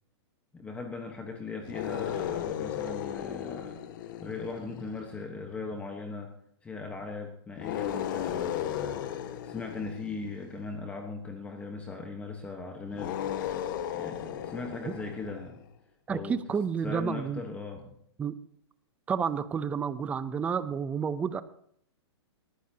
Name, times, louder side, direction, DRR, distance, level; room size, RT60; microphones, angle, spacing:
voice 1, 0.5-3.8 4.2-6.3 6.6-13.2 13.9-15.6 16.1-16.4 16.8-18.0, left 4 dB, 10° left, 3 dB, 1.2 m, -39 dB
sound 1, 1.6-5.2 7.6-10.7 12.9-15.6, left 10 dB, 45° left, 1.5 m, -35 dB
voice 2, 16.1-17.4 18.2-18.4 19.1-21.4, right 6 dB, 10° right, 14 dB, 0.5 m, -30 dB
21.0 x 15.0 x 2.8 m, 0.68 s
hypercardioid pair, 160°, 14 cm